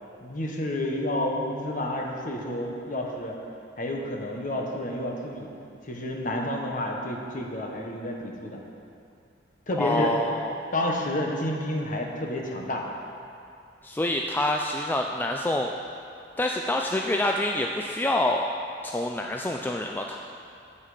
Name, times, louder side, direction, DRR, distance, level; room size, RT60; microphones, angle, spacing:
voice 1, 0.2-3.4 3.8-5.5 5.8-8.6 9.7-10.1 10.7-12.8, left 1 dB, 45° left, 0 dB, 1.2 m, -30 dB
voice 2, 9.8-10.5 13.8-15.7 16.4-18.5 18.8-20.2, left 1 dB, 10° left, 1 dB, 0.3 m, -26 dB
16.0 x 5.7 x 5.0 m, 2.5 s
head